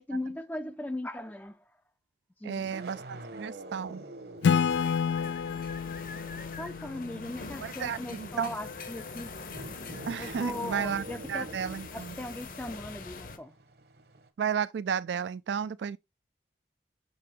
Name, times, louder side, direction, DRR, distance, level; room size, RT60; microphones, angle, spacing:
voice 1, 0.0-1.6 2.4-2.7 6.6-9.3 10.2-11.5 11.9-13.5, left 1 dB, 10° left, 0.4 m, -38 dB
voice 2, 2.4-4.0 7.6-8.5 10.1-12.2 14.4-16.0, right 7 dB, 75° right, 0.3 m, -33 dB
sound 1, 2.7-5.6 5.8-14.3, right 1 dB, 60° right, 1.0 m, -46 dB
Acoustic guitar / Strum, 4.4-8.0, left 7 dB, 75° left, 0.3 m, -30 dB
sound 2, 4.7-13.4, left 4 dB, 50° left, 0.9 m, -43 dB
6.7 x 5.5 x 3.1 m
head